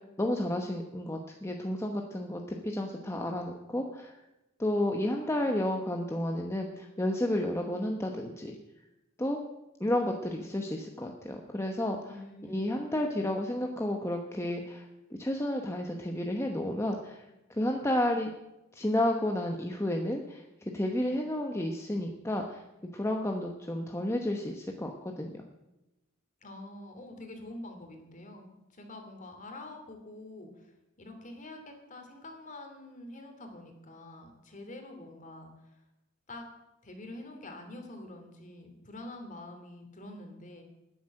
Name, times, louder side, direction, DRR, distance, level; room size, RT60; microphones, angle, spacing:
voice 1, 0.0-4.2 4.6-8.6 9.2-9.4 9.8-12.1 12.5-17.2 17.5-18.3 18.7-22.6 22.9-25.4, left 1 dB, 15° left, 2 dB, 1.0 m, -31 dB
voice 2, 12.1-12.7 26.4-35.7 36.3-36.4 36.8-40.6, left 1 dB, 40° left, 4 dB, 2.9 m, -46 dB
12.0 x 10.0 x 7.6 m, 0.95 s
head